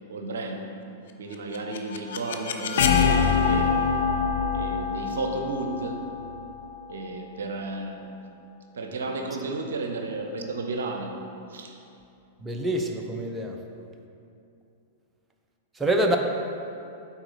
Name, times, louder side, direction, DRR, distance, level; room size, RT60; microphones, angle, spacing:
voice 1, 0.1-0.7 1.2-3.9 4.5-6.0 6.9-8.0 8.7-11.1 11.5-11.8, right 3 dB, 70° right, 4 dB, 0.7 m, -33 dB
sound 1, 1.3-7.2, left 6 dB, 65° left, 0.5 m, -25 dB
voice 2, 12.4-13.6 15.8-16.2, right 1 dB, 15° right, 2 dB, 0.7 m, -25 dB
8.7 x 4.1 x 4.1 m, 2.6 s
figure-of-eight pair, 100°, 0 cm